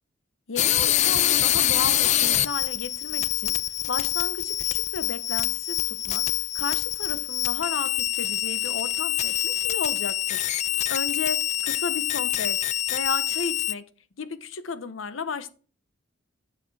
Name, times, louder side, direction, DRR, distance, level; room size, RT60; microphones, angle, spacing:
voice 1, 0.5-3.6 3.9-6.3 6.5-10.4 10.9-12.6 12.9-13.9 14.2-15.5, left 4 dB, 85° left, 0.8 m, -34 dB
sound 1, 0.6-13.7, left 12 dB, 35° left, 0.3 m, -25 dB
8.3 x 6.6 x 3.3 m
head